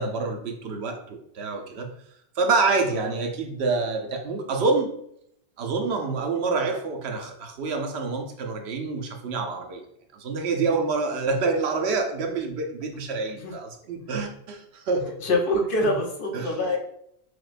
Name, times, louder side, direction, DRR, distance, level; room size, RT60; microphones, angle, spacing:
voice 1, 0.0-1.9 2.4-4.9 5.6-9.8 10.1-15.1 15.8-15.9 16.3-16.6, right 3 dB, 85° right, 4 dB, 0.9 m, -27 dB
voice 2, 15.2-16.8, left 1 dB, 60° left, 1 dB, 0.9 m, -25 dB
6.2 x 2.1 x 2.5 m, 0.71 s
omnidirectional pair, 1.1 m